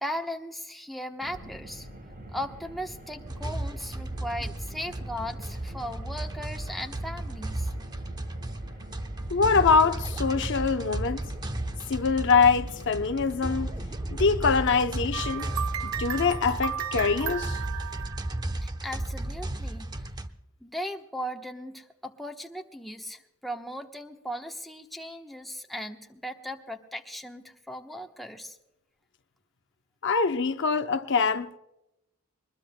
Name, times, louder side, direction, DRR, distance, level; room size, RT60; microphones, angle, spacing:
voice 1, 0.0-1.9 2.3-7.7 18.6-19.9 20.6-28.6, equal, ahead, 1.0 m, -37 dB
Car, 1.2-16.4, equal, 50° right, 4.5 m, -44 dB
sound 1, 3.3-20.3, right 1 dB, 20° right, 0.8 m, -34 dB
voice 2, 9.3-11.2 11.9-13.7 14.1-15.5 15.8-17.6 30.0-31.6, left 5 dB, 60° left, 0.7 m, -24 dB
sound 2, 15.1-18.9, right 9 dB, 80° right, 0.5 m, -35 dB
22.5 x 21.0 x 2.2 m
head